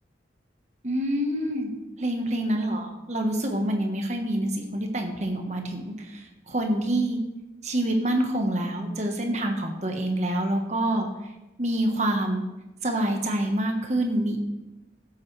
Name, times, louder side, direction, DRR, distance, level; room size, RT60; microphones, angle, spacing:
voice 1, 0.8-1.7 2.0-7.2 7.6-11.1 11.6-12.4 12.8-14.4, right 1 dB, 40° right, 3 dB, 1.3 m, -26 dB
13.5 x 8.4 x 3.3 m, 1.0 s
head